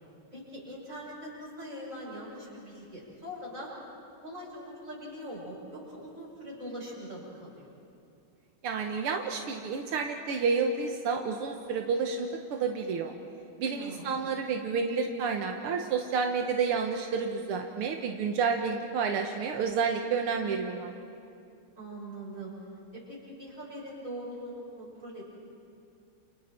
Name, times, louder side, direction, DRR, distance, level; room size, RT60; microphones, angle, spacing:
voice 1, 0.3-3.7 4.2-7.7 13.6-14.3 21.8-22.5 22.9-25.2, equal, 35° right, -5 dB, 7.5 m, -42 dB
voice 2, 8.6-13.1 13.6-21.0, right 5 dB, 85° right, 3 dB, 2.1 m, -30 dB
30.0 x 29.0 x 4.5 m, 2.5 s
omnidirectional pair, 2.4 m